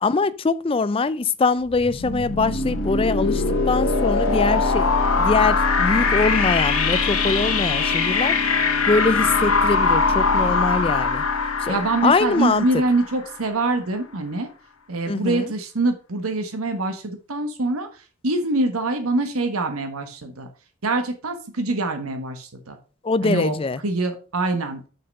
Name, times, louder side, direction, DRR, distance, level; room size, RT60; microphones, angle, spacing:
voice 1, 0.0-4.9 5.2-8.4 8.9-11.2 11.6-12.6 15.1-15.5 23.0-23.8, left 4 dB, 25° left, 0.3 m, -23 dB
sound 1, 1.7-13.4, left 4 dB, 70° left, 2.1 m, -22 dB
voice 2, 11.7-14.5 14.9-17.9 18.2-20.5 20.8-22.8 23.2-23.6 23.8-24.8, right 2 dB, 75° right, 1.3 m, -24 dB
6.5 x 5.8 x 5.4 m
head